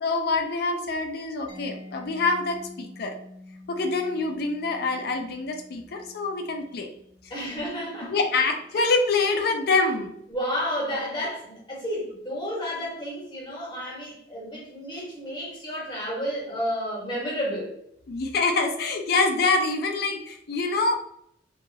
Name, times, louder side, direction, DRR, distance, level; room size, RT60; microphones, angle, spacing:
voice 1, 0.0-3.1 3.7-6.9 8.1-10.1 18.1-20.9, left 3 dB, 55° left, 5 dB, 0.4 m, -25 dB
Mallet percussion, 1.5-9.0, left 2 dB, 20° right, 0.6 m, -48 dB
voice 2, 7.3-8.5 10.3-17.8, equal, 25° left, -4 dB, 1.1 m, -31 dB
3.0 x 2.3 x 2.7 m, 0.73 s
head